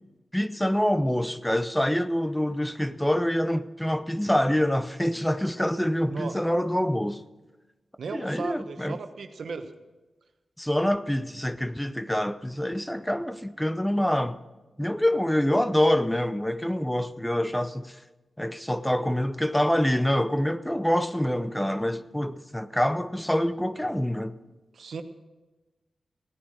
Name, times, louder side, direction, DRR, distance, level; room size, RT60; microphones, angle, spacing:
voice 1, 0.3-7.2 8.1-9.0 10.6-14.4 14.8-18.0 18.4-24.4, equal, 5° left, 0.7 m, -26 dB
voice 2, 8.0-9.7 24.7-25.0, right 4 dB, 80° right, 1.1 m, -36 dB
16.5 x 9.8 x 6.3 m
cardioid pair, 60°, 0 cm